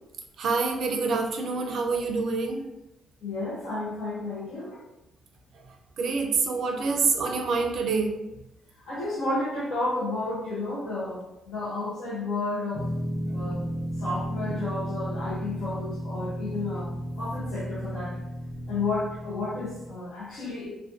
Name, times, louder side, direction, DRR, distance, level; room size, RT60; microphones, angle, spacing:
voice 1, 0.4-2.6 6.0-8.2, right 4 dB, 65° right, 2 dB, 0.5 m, -26 dB
voice 2, 3.2-4.8 8.9-12.9 13.3-13.7 14.0-16.9 17.2-18.2 18.7-20.7, left 2 dB, 80° left, -8 dB, 0.6 m, -32 dB
sound 1, 12.7-19.9, equal, 25° left, 0.5 m, -33 dB
2.4 x 2.2 x 2.6 m, 0.91 s
cardioid pair, 90°, 0 cm